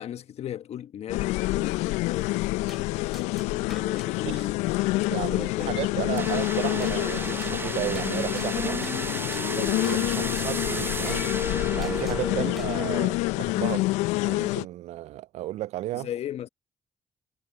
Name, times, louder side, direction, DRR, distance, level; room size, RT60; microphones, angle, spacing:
voice 1, 0.0-2.3 2.9-4.6 5.2-5.8 10.1-10.4 12.3-12.5 15.9-16.5, left 10 dB, 65° left, 1.3 m, -36 dB
sound 1, 1.1-14.7, left 21 dB, 80° left, 0.5 m, -27 dB
sound 2, 2.7-2.8 3.1-4.1 6.8-7.0 7.4-7.6 7.9-8.1 8.4-9.0 9.3-9.5 9.8-10.0 10.4-10.5 11.1-11.2 11.8-12.2 12.6-12.8, equal, ahead, 4.8 m, -47 dB
voice 2, 5.1-8.8 9.5-11.3 11.7-13.9 14.2-16.1, right 15 dB, 70° right, 0.4 m, -34 dB
sound 3, 6.2-13.1, right 3 dB, 20° right, 0.6 m, -33 dB
hypercardioid pair, 45°, 12 cm